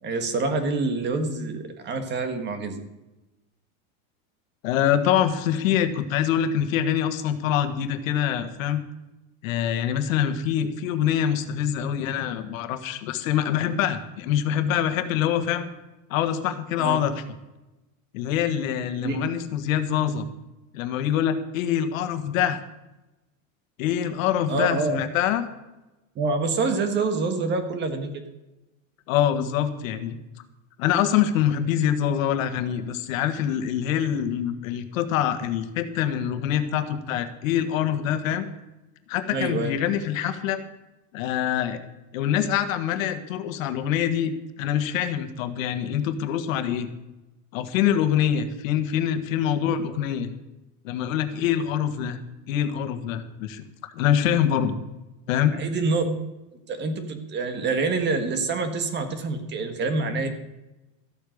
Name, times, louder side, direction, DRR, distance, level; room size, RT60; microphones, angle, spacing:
voice 1, 0.0-2.8 16.8-17.0 19.0-19.2 24.5-25.0 26.1-28.2 39.3-39.7 55.5-56.0 56.7-60.3, right 3 dB, 25° right, 8 dB, 1.5 m, -26 dB
voice 2, 4.6-8.8 9.4-15.7 16.1-17.2 18.1-20.2 20.7-22.6 23.8-25.4 29.1-30.2 30.8-38.5 39.1-40.6 41.1-41.8 42.1-44.3 44.6-46.9 47.5-50.3 50.8-52.2 52.5-53.6 53.9-54.8 55.3-55.5, left 10 dB, 85° left, 9 dB, 1.6 m, -25 dB
14.0 x 8.5 x 6.5 m, 1.0 s
supercardioid pair, 160°, 39 cm